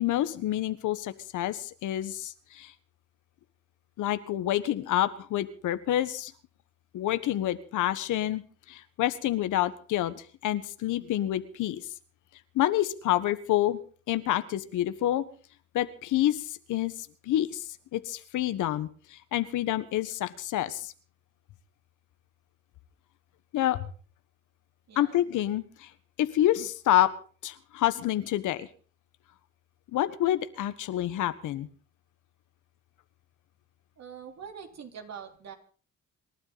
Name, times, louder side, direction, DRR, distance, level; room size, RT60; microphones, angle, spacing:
voice 1, 0.0-2.7 4.0-6.3 6.9-8.4 8.7-11.8 12.5-13.8 14.1-15.2 15.7-16.9 17.2-17.6 17.9-20.9 23.5-23.9 24.9-25.9 26.2-27.1 27.4-28.7 29.9-31.7, left 13 dB, 85° left, 12 dB, 1.4 m, -28 dB
voice 2, 34.0-35.6, right 7 dB, 60° right, 4 dB, 3.7 m, -44 dB
27.5 x 12.5 x 4.1 m, 0.40 s
cardioid pair, 90°, 30 cm